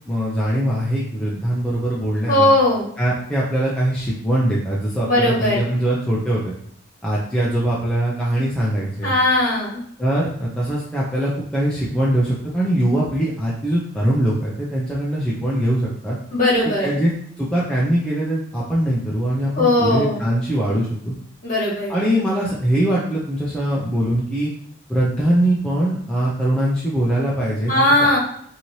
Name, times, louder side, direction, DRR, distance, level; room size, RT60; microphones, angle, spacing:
voice 1, 0.1-2.5 3.0-6.5 7.0-9.1 10.0-16.2 16.6-17.1 17.4-21.1 21.9-24.5 24.9-27.8, right 1 dB, 5° left, -6 dB, 0.4 m, -22 dB
voice 2, 2.3-2.8 5.0-5.6 9.0-9.8 16.3-16.9 19.5-20.2 21.4-21.9 27.7-28.2, left 1 dB, 40° left, -7 dB, 1.3 m, -18 dB
3.0 x 2.7 x 2.7 m, 0.68 s
head